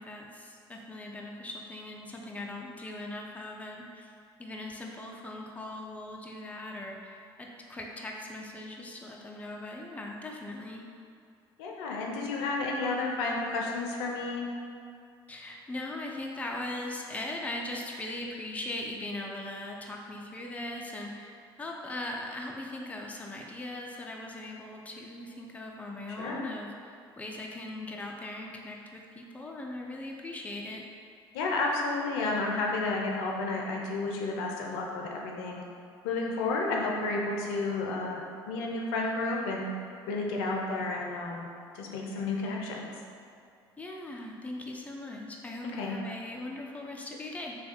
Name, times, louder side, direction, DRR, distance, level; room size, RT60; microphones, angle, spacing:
voice 1, 0.0-4.1 4.4-10.8 15.3-30.8 43.8-47.6, left 1 dB, 10° left, -1 dB, 0.5 m, -40 dB
voice 2, 11.6-14.5 26.2-26.5 31.3-35.6 36.0-39.7 40.1-41.5 41.7-43.0 45.7-46.0, left 3 dB, 70° left, -1 dB, 0.5 m, -31 dB
3.2 x 2.3 x 4.2 m, 2.4 s
hypercardioid pair, 60°, 13 cm